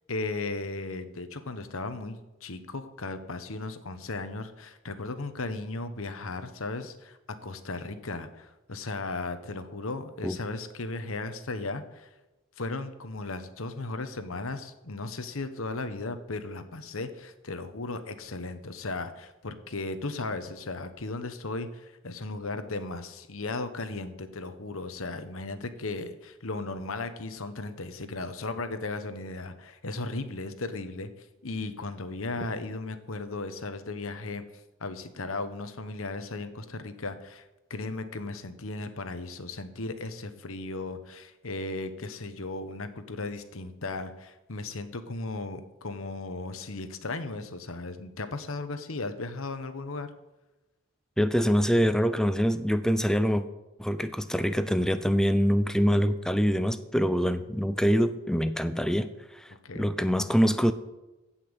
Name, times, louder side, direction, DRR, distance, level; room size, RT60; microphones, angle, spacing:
voice 1, 0.1-12.1 12.6-31.1 31.4-34.4 34.8-37.4 37.7-50.1 59.6-59.9, left 3 dB, 75° left, 10 dB, 1.2 m, -36 dB
voice 2, 51.2-53.5 53.8-59.4 59.7-60.7, equal, 5° left, 12 dB, 0.6 m, -25 dB
15.5 x 5.8 x 8.1 m, 1.0 s
head